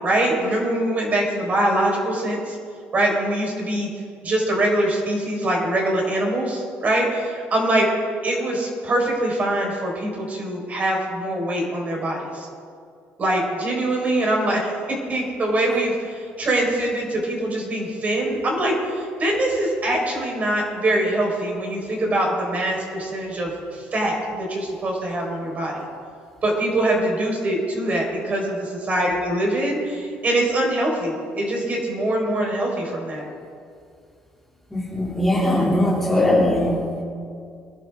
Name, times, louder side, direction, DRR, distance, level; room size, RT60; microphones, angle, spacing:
voice 1, 0.0-2.6 2.9-3.9 4.2-7.9 8.2-12.5 13.2-14.7 15.1-25.8 26.4-33.2, right 1 dB, 35° right, -1 dB, 4.3 m, -23 dB
voice 2, 34.7-37.0, left 1 dB, 5° left, -5 dB, 2.7 m, -20 dB
22.0 x 11.5 x 3.6 m, 2.3 s
cardioid pair, 110°, 4 cm